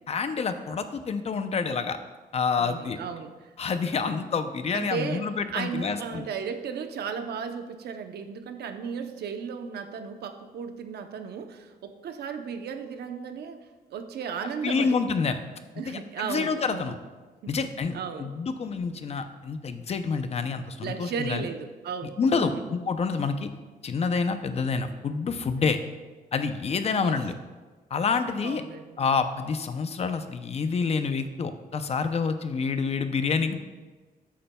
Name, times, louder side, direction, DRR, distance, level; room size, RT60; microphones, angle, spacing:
voice 1, 0.1-2.0 2.3-3.0 3.6-6.2 14.6-15.4 15.9-17.0 17.5-21.5 22.2-23.5 23.8-25.8 26.3-27.3 27.9-28.6 29.0-33.6, left 5 dB, 40° left, 9 dB, 0.6 m, -28 dB
voice 2, 2.6-3.5 4.7-13.6 13.9-15.0 15.8-17.0 17.4-17.6 17.9-18.3 20.8-22.6 27.0-27.2 28.4-29.0, right 6 dB, 85° right, 7 dB, 0.8 m, -35 dB
13.0 x 8.5 x 2.3 m, 1.3 s
wide cardioid pair, 150°, 16 cm